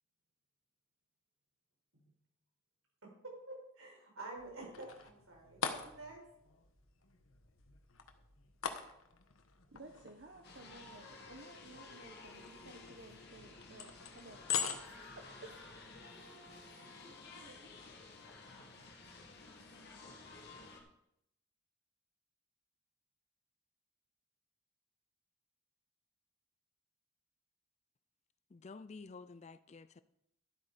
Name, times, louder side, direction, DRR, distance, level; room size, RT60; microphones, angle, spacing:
voice 1, 3.0-6.2, right 2 dB, 90° right, 4.6 m, -49 dB
sound 1, 4.4-16.1, left 7 dB, 90° left, 1.2 m, -45 dB
voice 2, 9.7-14.4 14.7-17.6, right 2 dB, 55° right, 0.9 m, -56 dB
sound 2, 10.4-20.8, left 3 dB, 55° left, 2.1 m, -54 dB
voice 3, 28.5-30.0, left 4 dB, 35° left, 0.4 m, -51 dB
12.5 x 8.1 x 5.0 m
head